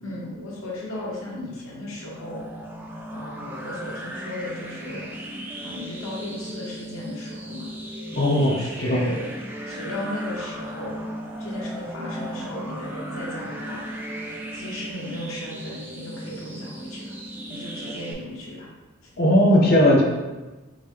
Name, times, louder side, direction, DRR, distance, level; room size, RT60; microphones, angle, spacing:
voice 1, 0.0-2.4 3.1-5.1 5.6-7.7 8.4-9.3 9.6-11.0 11.4-13.8 14.5-17.1 17.5-18.7, left 1 dB, 90° left, -4 dB, 1.1 m, -35 dB
sound 1, 2.1-18.1, right 1 dB, 10° right, 0.4 m, -36 dB
voice 2, 8.1-9.0 19.2-20.0, left 1 dB, 50° left, -1 dB, 0.8 m, -18 dB
5.2 x 2.1 x 3.3 m, 1.2 s
head